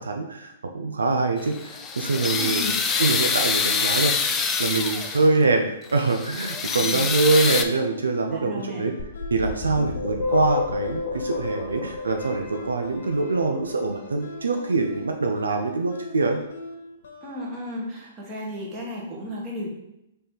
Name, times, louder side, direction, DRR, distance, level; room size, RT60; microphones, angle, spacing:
voice 1, 0.0-4.1 4.6-8.9 9.3-16.4, right 3 dB, 85° right, 4 dB, 0.5 m, -24 dB
sound 1, 1.4-5.4 5.9-7.6, left 5 dB, 20° left, 0.4 m, -25 dB
voice 2, 2.3-2.7 6.8-7.3 8.3-8.8 9.7-9.8 17.2-19.7, left 1 dB, 25° right, -3 dB, 1.4 m, -34 dB
sound 2, 7.4-17.5, left 2 dB, 70° left, 0.8 m, -42 dB
sound 3, 9.0-13.8, left 4 dB, 35° left, 1.1 m, -30 dB
3.5 x 3.2 x 4.4 m, 0.87 s
hypercardioid pair, 125°, 0 cm